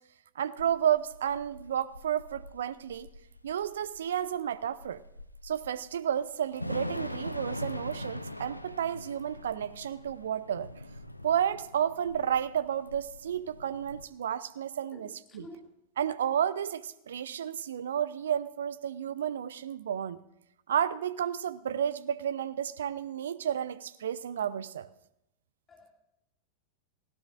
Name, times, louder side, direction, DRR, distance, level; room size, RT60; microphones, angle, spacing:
voice 1, 0.4-3.1 3.4-5.0 5.4-10.7 11.2-15.5 16.0-20.2 20.7-24.9, right 9 dB, 65° right, 18 dB, 0.5 m, -31 dB
Thunder / Rain, 0.6-14.0, left 1 dB, 85° left, 0.6 m, -42 dB
voice 2, 14.9-15.6 25.7-25.9, left 3 dB, 20° left, 1 dB, 2.3 m, -50 dB
18.5 x 16.0 x 2.5 m, 0.82 s
figure-of-eight pair, 90°, 0 cm